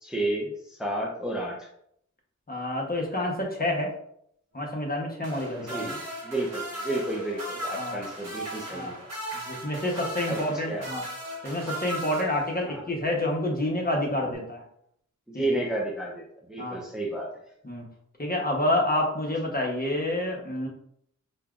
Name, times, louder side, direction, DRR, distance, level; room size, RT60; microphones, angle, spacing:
voice 1, 0.0-1.7 5.6-6.0 6.2-8.9 10.3-10.8 12.6-12.8 15.3-17.3, right 1 dB, ahead, -2 dB, 0.6 m, -31 dB
voice 2, 2.5-3.9 4.5-6.0 7.7-8.0 8.7-8.9 9.5-11.0 11.4-14.6 15.3-15.4 16.6-16.8 17.6-17.8 18.2-20.7, left 1 dB, 30° left, -1 dB, 0.9 m, -28 dB
sound 1, 5.2-12.8 14.2-14.3, right 1 dB, 55° right, 1.1 m, -37 dB
5.4 x 2.2 x 2.4 m, 0.71 s
wide cardioid pair, 65°, 30 cm